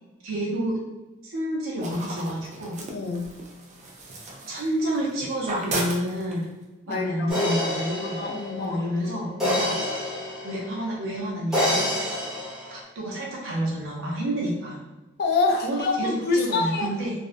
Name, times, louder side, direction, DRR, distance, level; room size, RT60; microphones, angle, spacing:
voice 1, 0.2-0.8 1.2-2.8 4.5-6.5 6.9-8.2 8.6-9.8 10.4-11.9 12.7-14.8 15.6-17.1, right 1 dB, 90° right, -4 dB, 0.5 m, -29 dB
sound 1, 1.8-5.1 5.4-6.6, right 1 dB, 35° right, 0.4 m, -34 dB
voice 2, 2.9-3.3 6.9-7.7 8.2-9.6 15.2-16.9, left 3 dB, 55° left, 3 dB, 0.3 m, -27 dB
sound 2, 7.3-10.8 11.5-12.8, left 1 dB, ahead, 0.8 m, -28 dB
2.5 x 2.0 x 2.4 m, 1.1 s
head